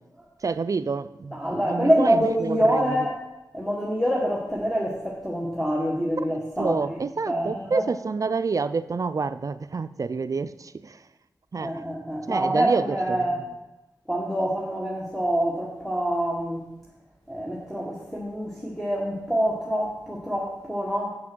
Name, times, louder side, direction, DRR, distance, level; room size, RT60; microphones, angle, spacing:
voice 1, 0.4-3.0 6.6-11.0 11.5-11.8 12.3-13.2, right 4 dB, 50° right, 13 dB, 0.4 m, -28 dB
voice 2, 1.3-3.2 3.5-6.8 7.3-7.9 11.6-13.4 14.1-16.6 17.3-21.1, equal, 5° left, -3 dB, 1.5 m, -26 dB
7.1 x 6.0 x 6.1 m, 0.98 s
cardioid pair, 45°, 7 cm